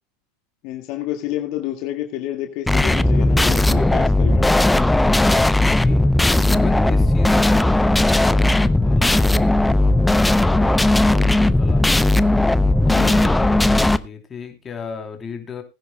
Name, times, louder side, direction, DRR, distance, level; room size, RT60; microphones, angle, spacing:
voice 1, 0.6-4.8 12.9-13.2, left 13 dB, 55° left, 5 dB, 1.8 m, -30 dB
sound 1, 2.7-14.0, left 2 dB, 5° left, 0.6 m, -16 dB
voice 2, 4.9-10.0 10.4-12.1 12.8-15.6, left 6 dB, 25° left, 4 dB, 3.1 m, -36 dB
20.0 x 10.0 x 2.2 m, 0.25 s
supercardioid pair, 115°, 0 cm